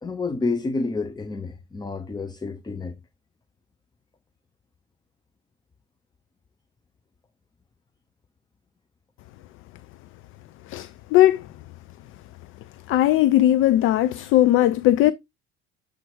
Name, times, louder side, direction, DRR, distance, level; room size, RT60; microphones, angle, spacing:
voice 1, 0.0-3.0, left 3 dB, 10° left, 0.7 m, -29 dB
voice 2, 10.7-11.4 12.9-15.1, left 14 dB, 40° left, 0.4 m, -18 dB
7.5 x 3.4 x 4.7 m
figure-of-eight pair, 60°, 34 cm